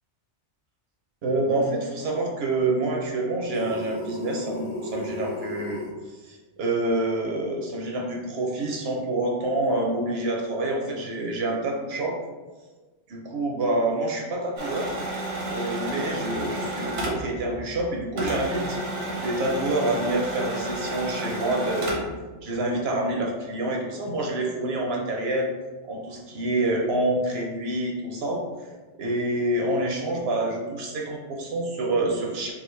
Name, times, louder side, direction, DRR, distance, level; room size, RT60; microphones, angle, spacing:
voice 1, 1.2-5.8 6.2-12.2 13.1-15.0 15.5-18.8 19.2-22.1 22.4-25.5 25.8-28.4 29.0-32.5, right 2 dB, 65° right, 0 dB, 0.8 m, -27 dB
sound 1, 3.5-5.9, equal, 40° left, 0.5 m, -34 dB
sound 2, 14.6-17.9 18.2-22.2, right 1 dB, 85° right, 1.2 m, -31 dB
3.7 x 2.4 x 3.1 m, 1.3 s
omnidirectional pair, 1.2 m